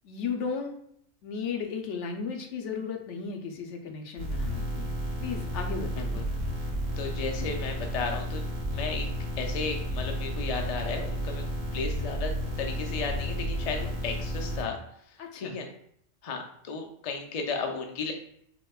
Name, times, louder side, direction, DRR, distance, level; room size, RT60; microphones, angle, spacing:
voice 1, 0.0-0.8 1.2-4.9 5.2-6.2 15.2-15.6, left 5 dB, 75° left, 3 dB, 0.9 m, -35 dB
sound 1, 4.2-14.6, equal, 50° right, 1.1 m, -32 dB
voice 2, 7.0-8.4 8.7-9.1 9.4-11.4 11.7-14.8 15.4-15.7 16.2-18.1, left 4 dB, 55° left, 2 dB, 0.4 m, -34 dB
4.8 x 2.1 x 2.3 m, 0.69 s
omnidirectional pair, 1.2 m